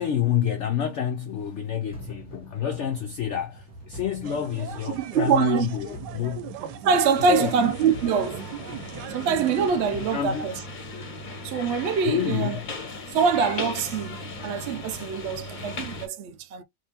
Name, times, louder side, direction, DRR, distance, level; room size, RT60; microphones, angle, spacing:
voice 1, 0.0-6.5 7.3-7.5 10.1-10.5 12.0-12.6, left 8 dB, 75° left, 0.6 m, -28 dB
sound 1, 1.9-11.1, right 1 dB, 5° left, 1.5 m, -44 dB
sound 2, 4.2-9.7, right 9 dB, 90° right, 1.2 m, -39 dB
voice 2, 5.0-5.7 6.8-8.4 9.1-10.5 11.4-12.6 13.1-16.6, right 6 dB, 75° right, 0.6 m, -24 dB
sound 3, 7.1-16.1, left 2 dB, 40° left, 0.8 m, -38 dB
3.6 x 2.6 x 2.8 m
omnidirectional pair, 1.7 m